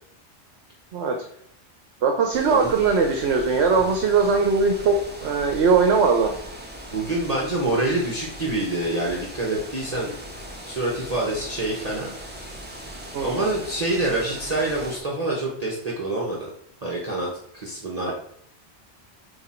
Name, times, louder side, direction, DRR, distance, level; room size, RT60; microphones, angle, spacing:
voice 1, 2.0-4.9 5.2-6.3 13.1-13.6 18.1-18.2, right 5 dB, 65° right, 4 dB, 1.0 m, -20 dB
sound 1, 2.3-15.0, equal, 10° right, 1.0 m, -39 dB
voice 2, 6.9-10.1 10.6-12.1 13.2-16.5 16.8-17.3 17.5-18.1, right 2 dB, 35° right, -4 dB, 1.1 m, -26 dB
7.8 x 3.0 x 4.3 m, 0.68 s
omnidirectional pair, 1.2 m